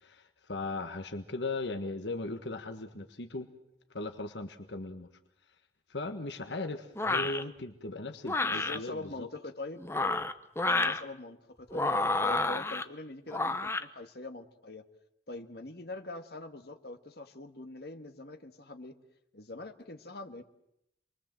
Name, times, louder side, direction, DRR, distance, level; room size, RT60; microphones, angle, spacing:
voice 1, 0.0-3.5 3.9-5.1 5.9-9.3, left 2 dB, 70° left, 7 dB, 1.5 m, -38 dB
sound 1, 7.0-7.4 8.2-8.8 9.8-11.0 11.7-12.8 13.3-13.8, left 2 dB, 15° left, 0.9 m, -29 dB
voice 2, 8.4-10.2 10.6-11.9 12.2-14.8 15.3-19.0 19.3-20.4, left 2 dB, 55° left, 6 dB, 1.7 m, -43 dB
27.5 x 22.0 x 7.6 m, 0.79 s
head